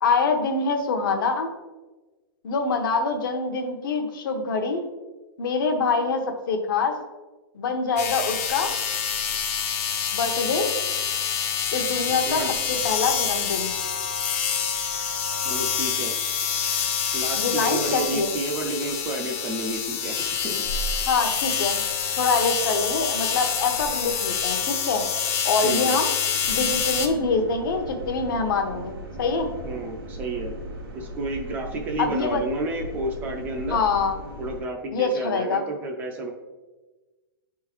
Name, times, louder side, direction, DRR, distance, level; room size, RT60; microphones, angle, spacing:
voice 1, 0.0-1.5 2.4-4.8 5.4-7.0 7.5-8.7 10.1-10.7 11.7-12.4 12.7-13.8 17.4-18.3 21.1-21.7 22.2-25.0 25.4-26.1 26.5-29.5 32.0-32.4 33.7-34.2 34.9-35.6, left 4 dB, 60° left, 5 dB, 0.8 m, -25 dB
sound 1, 8.0-27.1, left 7 dB, 35° left, 0.5 m, -27 dB
voice 2, 15.4-16.1 17.1-20.6 25.6-26.0 29.6-30.5 30.9-33.8 34.4-36.3, right 2 dB, 15° right, 2 dB, 0.3 m, -31 dB
sound 2, 26.4-34.6, equal, 80° right, 1.4 m, -38 dB
8.7 x 3.7 x 3.0 m, 1.2 s
supercardioid pair, 170°, 12 cm